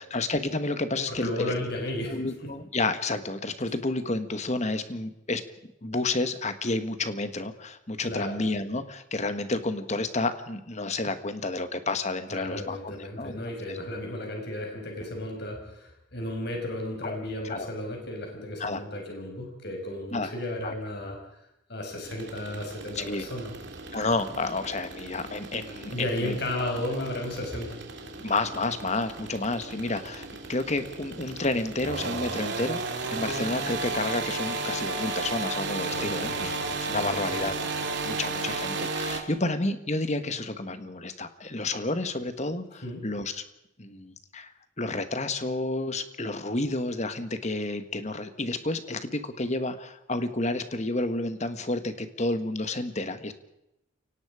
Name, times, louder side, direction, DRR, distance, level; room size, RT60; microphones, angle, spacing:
voice 1, 0.0-1.3 2.1-5.4 5.8-13.4 13.7-13.8 17.0-17.7 18.6-18.8 20.1-20.3 20.6-20.7 22.9-23.2 23.9-26.7 28.2-36.5 36.9-37.5 38.0-43.4 43.8-44.5 44.8-53.3, left 2 dB, 35° left, 10 dB, 1.6 m, -30 dB
voice 2, 1.1-2.5 8.0-8.5 12.3-21.2 21.7-23.5 25.9-27.8 35.9-37.5 42.8-43.1, left 1 dB, 55° left, 2 dB, 5.4 m, -34 dB
sound 1, 22.0-39.2, right 3 dB, 60° right, 2.9 m, -34 dB
29.5 x 18.0 x 5.0 m, 0.85 s
head